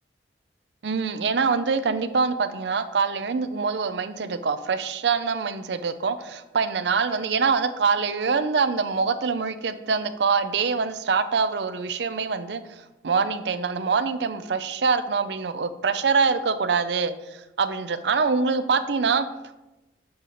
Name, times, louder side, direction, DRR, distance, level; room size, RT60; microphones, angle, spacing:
voice 1, 0.8-19.3, right 5 dB, 75° right, 12 dB, 0.5 m, -24 dB
7.8 x 3.9 x 5.9 m, 1.0 s
head